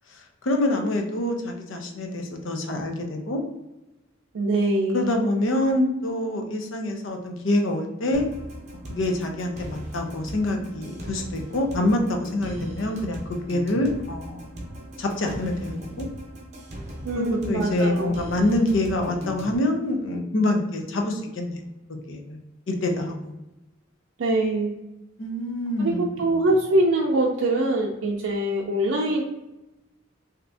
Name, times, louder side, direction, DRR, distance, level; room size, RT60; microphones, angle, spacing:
voice 1, 0.4-3.4 4.9-8.3 8.9-13.2 13.5-14.4 15.0-16.1 17.1-21.6 22.1-22.4 22.7-23.3 25.2-26.3, left 1 dB, 80° left, 3 dB, 0.6 m, -26 dB
voice 2, 4.3-5.1 17.0-18.1 24.2-24.7 25.8-29.2, right 1 dB, 90° right, -2 dB, 0.5 m, -23 dB
sound 1, 8.1-19.6, equal, 40° right, 0.7 m, -38 dB
2.8 x 2.5 x 3.3 m, 0.96 s
head